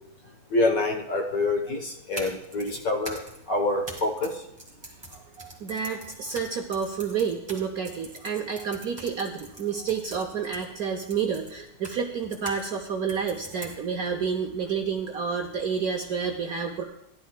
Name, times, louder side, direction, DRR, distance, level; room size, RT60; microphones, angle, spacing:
voice 1, 0.5-3.2 3.5-4.3, left 2 dB, 50° left, 3 dB, 1.3 m, -26 dB
sound 1, 2.0-12.6 13.1-14.1, right 1 dB, 10° right, 2.1 m, -44 dB
voice 2, 5.1-16.8, right 6 dB, 60° right, 3 dB, 1.0 m, -30 dB
15.0 x 11.0 x 2.2 m, 0.81 s
omnidirectional pair, 2.2 m